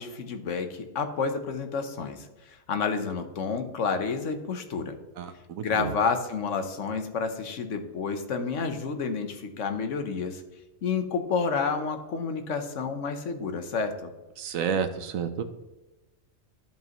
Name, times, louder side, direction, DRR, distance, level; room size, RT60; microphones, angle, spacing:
voice 1, 0.0-5.0 5.6-10.4 10.8-14.1, left 5 dB, 70° left, 7 dB, 1.2 m, -30 dB
voice 2, 5.2-5.9 14.4-15.4, right 7 dB, 90° right, 9 dB, 1.2 m, -30 dB
13.5 x 5.3 x 3.0 m, 1.1 s
omnidirectional pair, 1.4 m